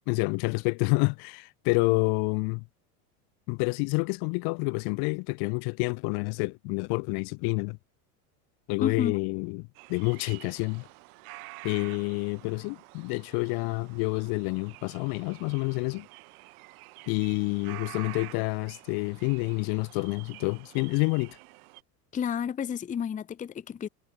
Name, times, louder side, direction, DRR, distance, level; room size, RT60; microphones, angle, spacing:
voice 1, 0.1-2.6 3.5-7.8 8.7-10.9 11.6-16.1 17.1-21.4, left 33 dB, 50° left, 1.0 m, -28 dB
voice 2, 8.8-9.1 22.1-23.9, left 8 dB, 15° left, 0.8 m, -31 dB
sound 1, 9.7-21.8, right 27 dB, 65° right, 3.5 m, -48 dB
supercardioid pair, 115°, 47 cm